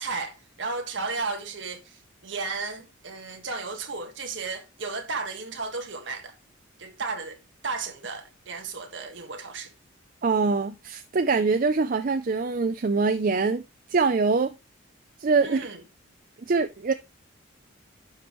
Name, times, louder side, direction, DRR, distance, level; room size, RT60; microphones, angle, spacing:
voice 1, 0.0-6.3 6.8-7.4 7.6-9.7 15.4-15.8, right 4 dB, 60° right, 1.6 m, -34 dB
voice 2, 10.2-13.6 13.9-14.5 15.2-15.6 16.5-16.9, right 4 dB, 40° right, 0.4 m, -23 dB
11.0 x 5.1 x 3.1 m
head